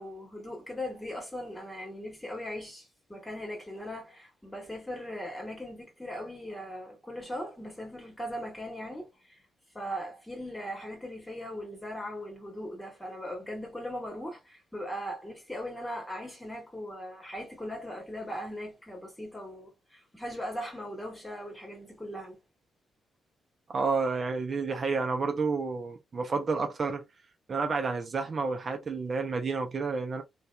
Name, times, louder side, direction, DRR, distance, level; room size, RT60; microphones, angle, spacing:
voice 1, 0.0-9.4 9.7-22.4, equal, 15° left, 1.5 m, -39 dB
voice 2, 23.7-27.0 27.5-30.2, right 4 dB, 45° right, 0.6 m, -30 dB
2.6 x 2.4 x 2.3 m
supercardioid pair, 65°, 0 cm